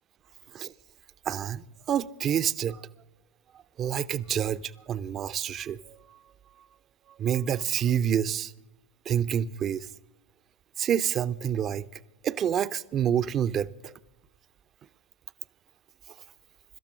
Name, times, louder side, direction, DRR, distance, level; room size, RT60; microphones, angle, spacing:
voice 1, 1.3-2.8 3.8-6.0 7.2-8.5 9.1-9.9 10.8-11.9 12.2-13.9, right 9 dB, 30° right, 0.4 m, -28 dB
25.0 x 13.0 x 3.7 m
figure-of-eight pair, 90°, 0 cm